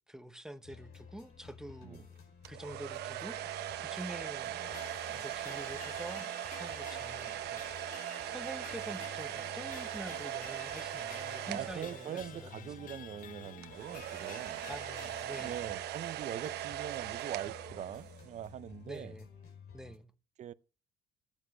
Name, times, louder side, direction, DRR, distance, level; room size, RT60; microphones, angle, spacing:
voice 1, 0.1-4.6 5.1-7.9 8.2-12.9 14.7-15.5 18.9-19.3 19.7-20.1, right 1 dB, 5° right, 1.1 m, -47 dB
sound 1, 0.6-20.0, left 6 dB, 70° left, 5.3 m, -54 dB
sound 2, 2.4-12.6 13.6-18.4, right 14 dB, 75° right, 0.9 m, -40 dB
sound 3, 4.6-15.7, left 10 dB, 50° left, 0.7 m, -51 dB
voice 2, 11.4-14.6 15.4-19.1 20.4-20.5, right 10 dB, 45° right, 0.6 m, -42 dB
14.5 x 9.0 x 6.0 m
cardioid pair, 110°, 17 cm